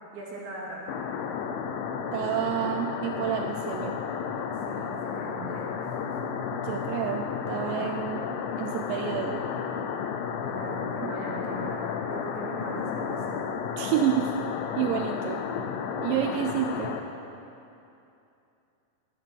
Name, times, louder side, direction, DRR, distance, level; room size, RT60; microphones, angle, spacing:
voice 1, 0.1-1.0 4.7-5.7 6.0-6.1 10.4-13.3, right 2 dB, 65° right, -3 dB, 3.8 m, -39 dB
sound 1, 0.9-17.0, left 7 dB, 80° left, 2.1 m, -32 dB
voice 2, 2.1-4.0 6.5-9.5 11.0-11.1 13.8-14.5 14.8-15.4 16.0-17.0, right 10 dB, 85° right, 5 dB, 2.8 m, -29 dB
12.5 x 11.5 x 5.9 m, 2.7 s
omnidirectional pair, 5.0 m